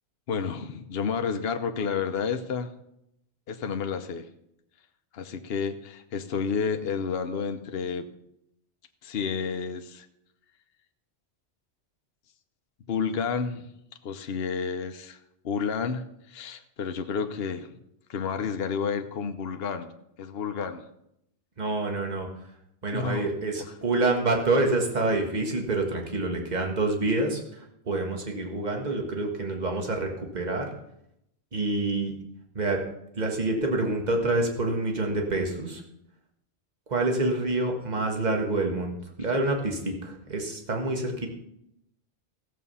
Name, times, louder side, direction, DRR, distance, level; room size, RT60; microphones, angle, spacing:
voice 1, 0.3-2.7 3.5-4.3 5.1-8.1 9.0-10.1 12.9-13.7 14.0-15.2 15.4-17.7 18.1-19.9 20.2-20.9 22.9-23.3 23.6-23.7, left 6 dB, 60° left, 7 dB, 1.0 m, -30 dB
voice 2, 21.6-22.3 22.8-30.7 31.5-32.1 32.6-32.8 33.1-35.8 36.9-38.9 39.2-41.3, right 2 dB, 40° right, 2 dB, 1.8 m, -27 dB
15.0 x 7.5 x 5.6 m, 0.79 s
omnidirectional pair, 1.2 m